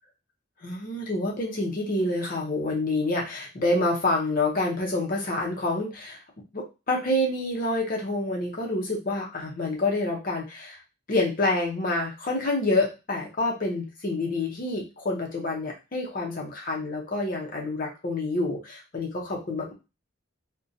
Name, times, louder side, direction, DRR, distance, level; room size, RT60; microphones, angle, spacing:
voice 1, 0.6-6.2 6.5-10.8 11.1-19.7, left 2 dB, 45° left, -1 dB, 0.6 m, -27 dB
2.6 x 2.1 x 2.6 m, 0.27 s
head